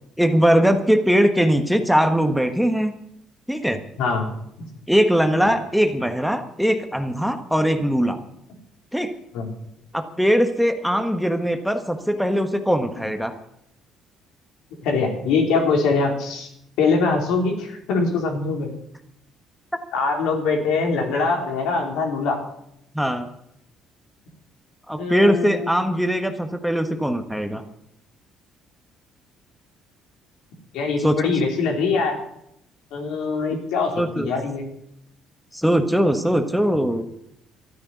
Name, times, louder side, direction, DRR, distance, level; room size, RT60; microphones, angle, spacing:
voice 1, 0.2-2.9 3.5-3.8 4.9-8.2 8.9-9.1 9.9-13.3 22.9-23.3 24.9-27.6 31.0-31.1 33.9-34.3 35.5-37.1, equal, ahead, 7 dB, 1.4 m, -20 dB
voice 2, 4.0-4.3 9.3-9.5 14.8-16.5 16.8-18.7 19.9-22.4 25.0-25.7 30.7-32.2 32.9-34.7, left 4 dB, 80° left, 2 dB, 4.1 m, -23 dB
13.0 x 9.7 x 9.5 m, 0.76 s
cardioid pair, 100°, 0 cm